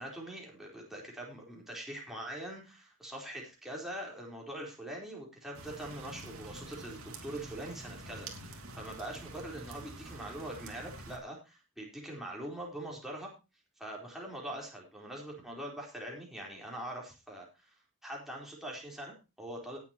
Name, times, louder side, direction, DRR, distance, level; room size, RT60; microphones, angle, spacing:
voice 1, 0.0-13.3 13.8-17.7 18.0-19.8, right 1 dB, ahead, -2 dB, 4.2 m, -43 dB
sound 1, 5.5-11.2, right 2 dB, 75° right, 2.9 m, -47 dB
18.5 x 8.4 x 3.0 m, 0.28 s
head